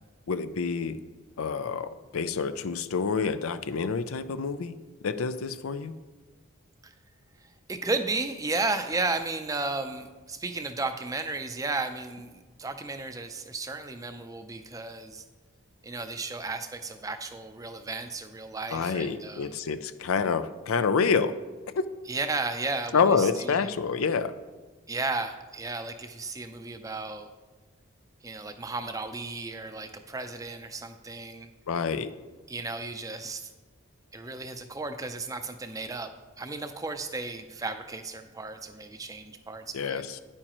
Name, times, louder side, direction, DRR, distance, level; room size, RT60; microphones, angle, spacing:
voice 1, 0.3-1.0 1.4-4.8 5.0-5.9 18.7-21.4 21.8-21.9 22.9-24.3 31.7-32.1 39.7-40.2, left 5 dB, 85° left, 12 dB, 0.5 m, -27 dB
voice 2, 7.7-15.2 15.8-19.5 22.1-23.7 24.9-27.3 28.2-31.5 32.5-33.5 34.1-36.1 36.4-40.0, right 3 dB, 15° right, 8 dB, 0.5 m, -34 dB
9.8 x 8.8 x 3.0 m, 1.3 s
head